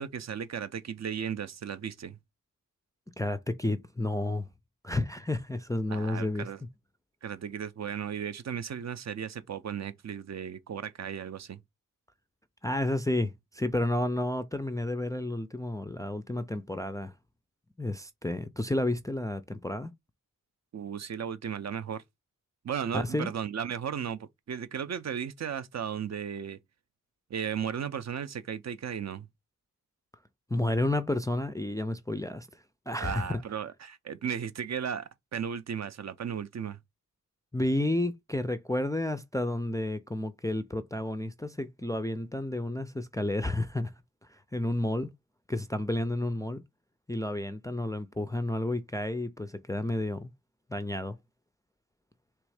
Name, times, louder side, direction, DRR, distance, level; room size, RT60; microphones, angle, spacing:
voice 1, 0.0-2.2 5.9-6.6 7.2-11.6 20.7-22.0 22.6-24.2 24.5-26.6 27.3-29.3 33.0-36.8, right 8 dB, 55° right, 0.5 m, -35 dB
voice 2, 3.2-4.5 4.8-6.5 12.6-17.1 17.8-19.9 22.9-23.3 30.5-32.5 32.9-33.4 37.5-43.9 44.5-45.1 45.5-46.6 47.1-50.3 50.7-51.2, left 1 dB, 10° left, 0.3 m, -31 dB
3.4 x 3.1 x 4.7 m
wide cardioid pair, 125°, 33 cm